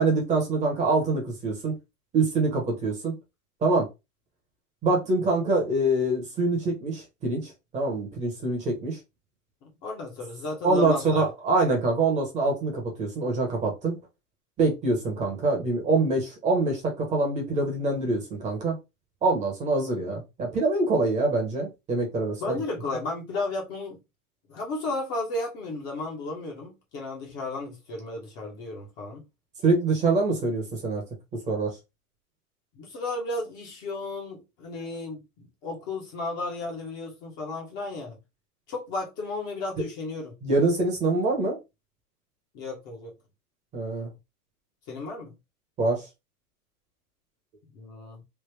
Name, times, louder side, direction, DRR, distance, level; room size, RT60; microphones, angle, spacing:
voice 1, 0.0-1.7 2.1-3.1 3.6-3.9 4.8-9.0 10.6-13.9 14.6-18.7 19.2-22.6 29.6-31.0 31.3-31.8 40.4-41.6 43.7-44.1 45.8-46.1, right 3 dB, 15° right, 0.8 m, -25 dB
voice 2, 9.6-11.3 22.4-24.0 24.5-29.2 32.8-38.2 38.7-40.3 42.5-43.1 44.9-45.3 47.7-48.2, left 2 dB, 25° left, 0.7 m, -34 dB
3.3 x 2.1 x 3.3 m
hypercardioid pair, 140°, 46 cm